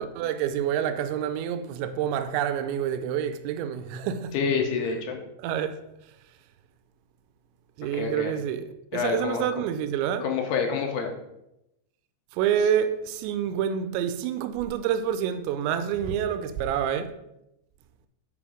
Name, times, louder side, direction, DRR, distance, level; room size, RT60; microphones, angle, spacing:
voice 1, 0.0-4.4 5.4-5.8 7.8-8.6 8.9-10.3 12.3-17.1, right 9 dB, 85° right, 2.9 m, -27 dB
voice 2, 4.3-5.2 7.9-8.3 8.9-9.4 10.2-11.1, left 5 dB, 75° left, 2.6 m, -27 dB
7.1 x 4.9 x 4.9 m
omnidirectional pair, 5.2 m